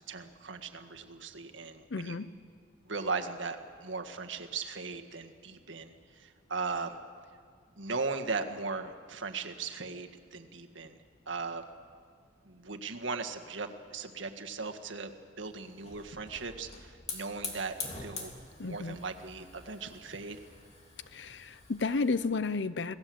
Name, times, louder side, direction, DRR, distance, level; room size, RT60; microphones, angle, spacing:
voice 1, 0.0-2.2 2.9-7.0 7.8-11.0 11.3-11.6 12.4-15.1 15.4-17.7 18.0-18.3 18.6-20.4, right 4 dB, 80° right, 5 dB, 1.7 m, -38 dB
voice 2, 1.9-2.3 18.6-19.0 21.1-22.9, left 4 dB, 65° left, 15 dB, 0.7 m, -32 dB
Hiss / Fire, 15.4-22.2, left 4 dB, 35° left, 3.1 m, -45 dB
27.0 x 18.5 x 7.8 m, 2.1 s
head